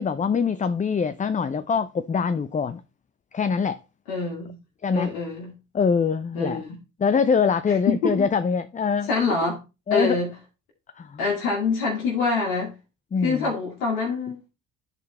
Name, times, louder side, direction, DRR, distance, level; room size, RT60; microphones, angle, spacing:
voice 1, 0.0-2.8 3.3-3.8 4.8-5.1 5.7-6.6 7.0-9.1 9.9-10.2 11.0-11.1 13.1-13.5, left 6 dB, 20° left, 0.4 m, -23 dB
voice 2, 4.1-4.5 4.9-5.5 6.3-6.8 7.7-8.3 9.0-9.6 9.9-10.4 11.2-12.7 13.2-14.5, left 4 dB, 90° left, 1.8 m, -25 dB
10.5 x 3.9 x 4.1 m
hypercardioid pair, 60°, 45 cm